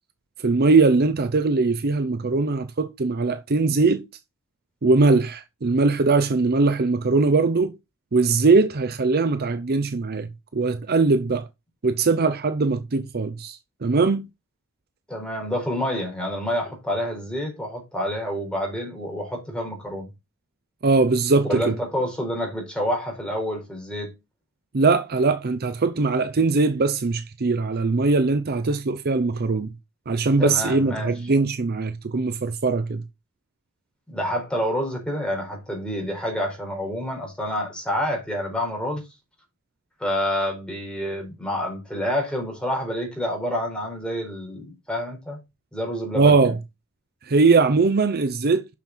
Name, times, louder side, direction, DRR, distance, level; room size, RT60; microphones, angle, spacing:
voice 1, 0.4-4.0 4.8-7.7 8.1-11.5 11.8-14.2 20.8-21.8 24.7-29.7 30.1-33.0 46.1-46.6 47.2-48.7, right 3 dB, 45° right, 0.7 m, -21 dB
voice 2, 15.1-20.1 21.4-24.1 30.4-31.1 34.1-39.0 40.0-45.4 45.7-46.3, equal, 5° left, 4.5 m, -28 dB
7.0 x 6.5 x 4.3 m
head